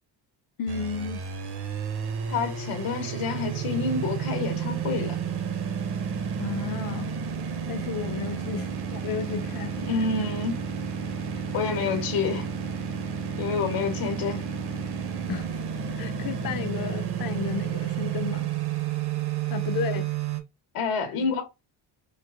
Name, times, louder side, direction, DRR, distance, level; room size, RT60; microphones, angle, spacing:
voice 1, 0.6-1.2 6.4-7.1 7.7-10.3 15.3-15.6 15.9-18.5 19.5-20.1 21.0-21.3, left 6 dB, 45° left, 0.5 m, -33 dB
sound 1, 0.7-20.4, right 8 dB, 50° right, 0.8 m, -31 dB
voice 2, 2.3-5.2 8.1-8.4 9.8-10.5 11.5-12.5 13.4-14.5 20.7-21.4, left 5 dB, 85° left, 1.1 m, -28 dB
4.4 x 2.4 x 2.3 m
cardioid pair, 70°, 50 cm